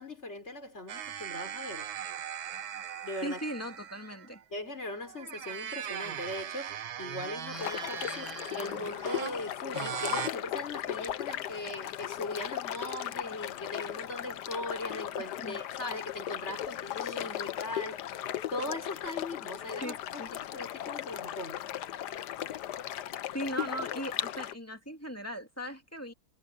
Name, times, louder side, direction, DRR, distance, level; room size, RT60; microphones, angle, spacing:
voice 1, 0.0-1.9 3.0-3.4 4.5-18.1 18.5-21.6, left 2 dB, 30° left, 4.8 m, -39 dB
sound 1, 0.9-4.4 5.1-10.3, right 9 dB, 70° right, 1.9 m, -39 dB
voice 2, 3.2-4.4 15.4-15.6 19.8-20.3 23.3-26.1, equal, 5° left, 2.1 m, -38 dB
sound 2, 7.5-24.5, left 12 dB, 65° left, 1.2 m, -37 dB
omnidirectional pair, 2.3 m